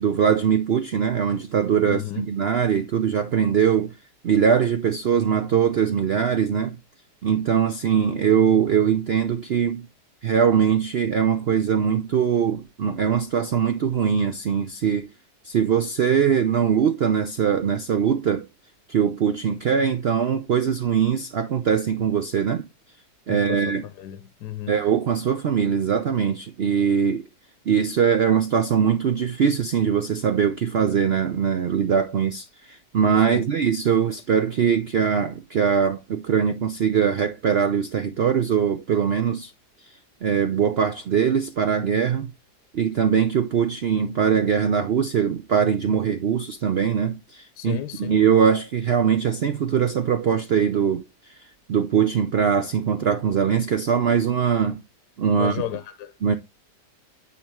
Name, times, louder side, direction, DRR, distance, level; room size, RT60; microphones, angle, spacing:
voice 1, 0.0-3.9 4.2-6.8 7.2-9.9 10.2-15.1 15.4-18.5 18.9-22.6 23.3-23.8 24.7-27.3 27.7-39.5 40.2-42.3 42.7-54.8 55.2-55.6 56.2-56.3, right 7 dB, 75° right, 0.5 m, -22 dB
voice 2, 1.8-2.3 23.3-24.7 33.3-33.5 47.6-48.2 55.3-56.1, left 12 dB, 75° left, 1.2 m, -33 dB
9.4 x 3.7 x 3.5 m
omnidirectional pair, 1.8 m